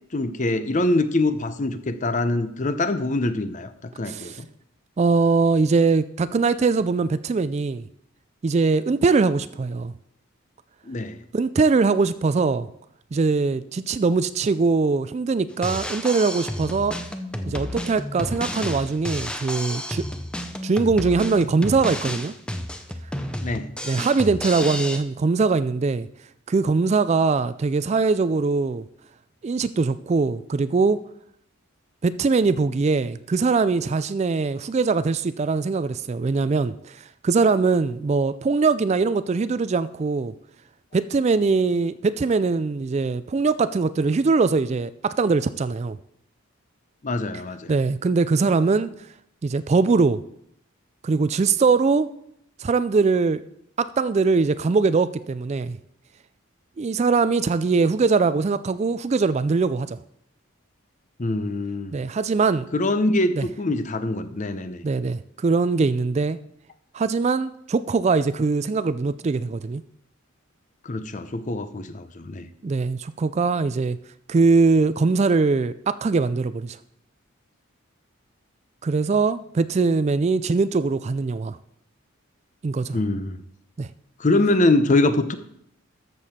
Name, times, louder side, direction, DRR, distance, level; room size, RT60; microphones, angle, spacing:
voice 1, 0.1-3.7 4.0-4.5 10.9-11.2 23.4-23.7 47.0-47.7 61.2-62.0 62.7-64.8 70.8-72.5 82.9-83.4 84.2-85.3, left 2 dB, 35° left, 0.7 m, -23 dB
voice 2, 4.1-4.4 5.0-7.8 8.4-9.9 11.3-12.7 13.1-17.0 17.5-20.0 20.6-22.3 23.8-26.1 26.5-28.8 29.4-31.0 32.0-36.7 37.2-40.3 40.9-46.0 47.7-48.9 49.4-50.2 51.0-52.1 52.6-53.4 53.8-55.8 56.8-60.0 61.9-62.7 63.3-63.5 64.8-66.4 66.9-69.8 72.6-74.0 74.3-76.8 78.8-81.6 82.6-83.0 83.8-83.9, right 4 dB, 30° right, 0.3 m, -22 dB
Drum kit, 15.5-25.0, left 1 dB, 5° left, 0.6 m, -31 dB
13.5 x 6.9 x 4.2 m
head